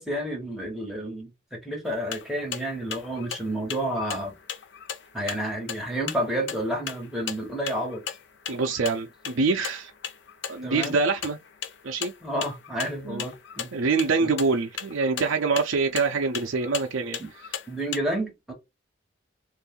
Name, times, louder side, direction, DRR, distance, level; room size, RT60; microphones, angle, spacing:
voice 1, 0.0-4.3 5.1-8.0 10.6-11.0 12.2-13.7 14.2-14.3 17.2-17.3 17.7-18.5, right 1 dB, ahead, 1.4 m, -30 dB
sound 1, 1.9-18.0, left 8 dB, 65° left, 0.6 m, -38 dB
voice 2, 8.5-9.9 10.5-11.4 11.8-12.1 13.0-13.2 13.7-17.2, right 4 dB, 75° right, 0.5 m, -25 dB
2.6 x 2.5 x 3.6 m
head